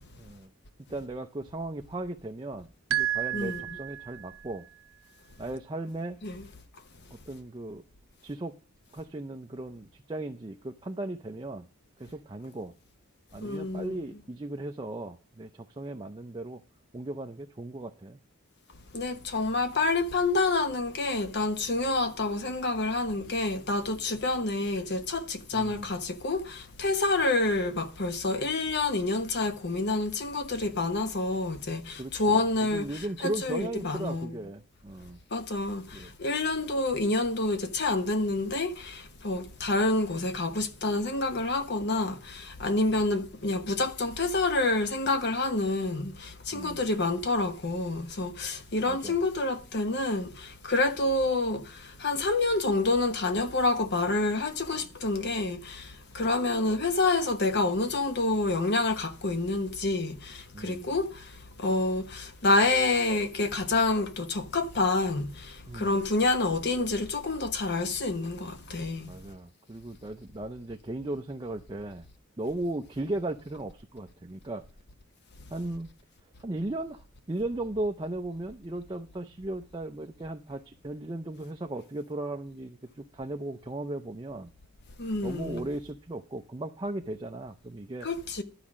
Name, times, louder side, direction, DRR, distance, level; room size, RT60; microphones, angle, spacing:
voice 1, 0.2-0.5 0.9-2.7 2.9-4.7 5.4-6.2 7.3-7.8 8.2-8.5 8.9-11.7 12.0-12.7 13.3-16.6 16.9-18.2 25.5-25.9 32.0-35.2 35.9-36.1 46.5-46.8 48.9-49.2 56.2-56.3 60.5-60.9 65.7-66.0 69.0-72.0 72.4-74.6 75.5-75.9 76.4-84.5 85.2-88.1, right 2 dB, 20° right, 0.5 m, -36 dB
sound 1, 2.9-4.5, right 11 dB, 70° right, 0.6 m, -31 dB
voice 2, 13.4-14.0 18.9-34.4 35.3-61.3 61.6-69.1 85.0-85.6 88.0-88.4, left 2 dB, 50° left, 1.0 m, -28 dB
12.0 x 4.9 x 7.3 m
head